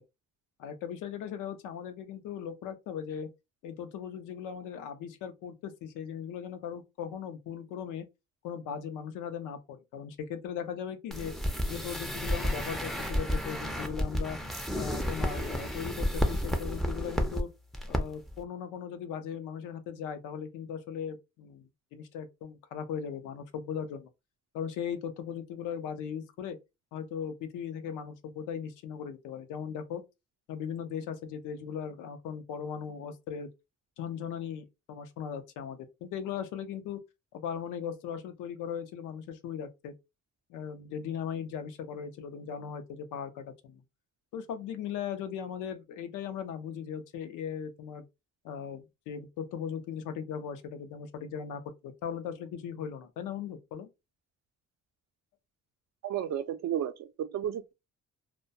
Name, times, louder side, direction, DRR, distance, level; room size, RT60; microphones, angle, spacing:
voice 1, 0.6-3.3 3.6-8.1 8.4-11.3 11.7-14.4 14.7-17.5 17.9-24.1 24.5-26.6 26.9-30.0 30.5-33.5 34.0-37.0 37.3-39.9 40.5-43.8 44.3-48.1 48.4-53.9, left 8 dB, 90° left, 0.5 m, -38 dB
sound 1, 11.1-17.4 17.7-18.0 18.3-18.4, equal, ahead, 0.4 m, -31 dB
voice 2, 56.0-57.7, right 10 dB, 60° right, 0.4 m, -33 dB
2.2 x 2.1 x 2.6 m
cardioid pair, 90°, 30 cm